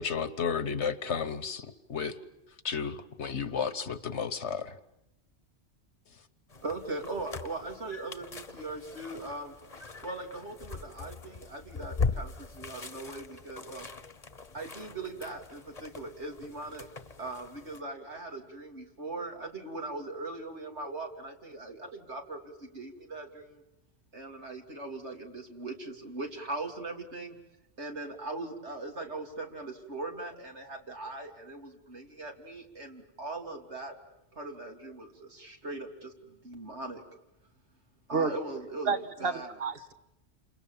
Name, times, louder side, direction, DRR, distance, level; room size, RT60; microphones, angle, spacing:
voice 1, 0.0-2.1 2.6-4.7, left 6 dB, 80° left, 13 dB, 1.5 m, -33 dB
sound 1, 6.5-17.8, left 4 dB, 35° left, 1.2 m, -40 dB
voice 2, 6.6-9.5 10.0-13.9 14.5-16.9 17.2-23.6 24.1-27.4 27.8-34.0 34.3-37.0 38.1-38.9 39.2-39.5, right 2 dB, 80° right, 2 dB, 3.5 m, -40 dB
voice 3, 38.8-39.9, right 5 dB, 60° right, 9 dB, 1.6 m, -30 dB
29.0 x 27.5 x 7.3 m, 0.87 s
omnidirectional pair, 1.1 m